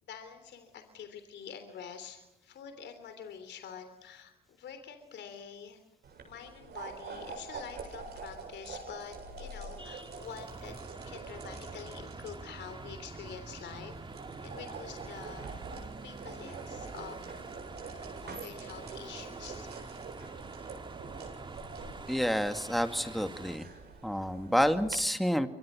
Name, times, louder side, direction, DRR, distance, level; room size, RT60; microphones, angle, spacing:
voice 1, 0.0-5.8 6.2-10.8 11.0-13.9 14.4-15.5 16.0-17.2 18.2-19.7, left 7 dB, 70° left, 8 dB, 3.3 m, -46 dB
sound 1, 6.0-24.9, right 4 dB, 65° right, 7.8 m, -46 dB
sound 2, 9.8-23.6, right 3 dB, 25° right, 1.9 m, -46 dB
voice 2, 22.1-23.7 24.0-25.5, equal, ahead, 8 dB, 2.2 m, -29 dB
29.5 x 24.5 x 6.3 m, 0.87 s
cardioid pair, 75°, 19 cm